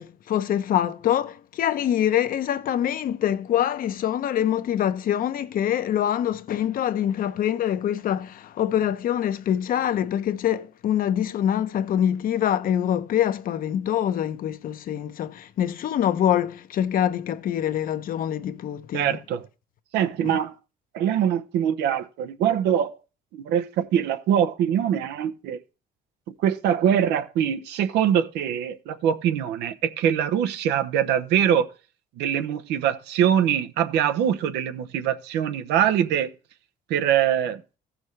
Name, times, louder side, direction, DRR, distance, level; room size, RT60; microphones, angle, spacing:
voice 1, 0.0-19.2 20.2-20.4, left 10 dB, 55° left, 0.8 m, -25 dB
voice 2, 18.9-19.5 19.9-20.5 20.9-22.9 23.3-25.6 26.4-31.7 32.2-36.3 36.9-37.6, right 9 dB, 85° right, 0.9 m, -23 dB
15.0 x 6.2 x 3.2 m
cardioid pair, 110°, 17 cm